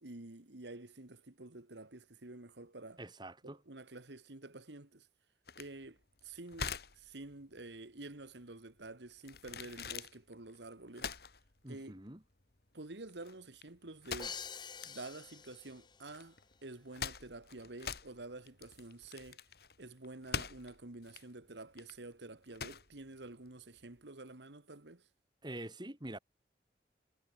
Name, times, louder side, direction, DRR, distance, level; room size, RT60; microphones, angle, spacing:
voice 1, 0.0-3.0 3.4-5.1 5.6-11.1 11.7-12.0 12.7-14.4 14.8-19.4 19.8-25.1, right 2 dB, 85° right, 1.9 m, -49 dB
voice 2, 3.0-3.6 11.6-12.2 25.4-26.2, right 1 dB, 25° right, 2.4 m, -45 dB
sound 1, 5.5-24.0, left 6 dB, 60° left, 1.9 m, -45 dB
Crash cymbal, 14.2-16.0, left 6 dB, 25° left, 3.0 m, -46 dB
head